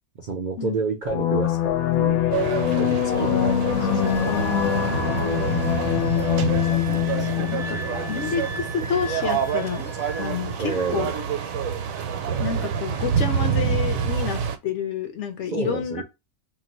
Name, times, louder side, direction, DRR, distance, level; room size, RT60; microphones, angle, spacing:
voice 1, 0.2-2.2 2.8-4.3 5.1-5.9 10.6-11.2 15.5-16.0, right 4 dB, 60° right, 0.5 m, -30 dB
sound 1, 1.0-8.4, left 10 dB, 85° left, 1.0 m, -24 dB
sound 2, 2.3-14.6, right 7 dB, 75° right, 1.0 m, -27 dB
Wind instrument woodwind instrument, 4.0-10.4 10.7-11.4, left 1 dB, 5° right, 0.5 m, -38 dB
voice 2, 4.3-5.4 6.9-7.8 8.1-9.9 10.2-11.0 12.4-16.0, left 7 dB, 65° left, 0.8 m, -29 dB
2.6 x 2.2 x 4.0 m
omnidirectional pair, 1.5 m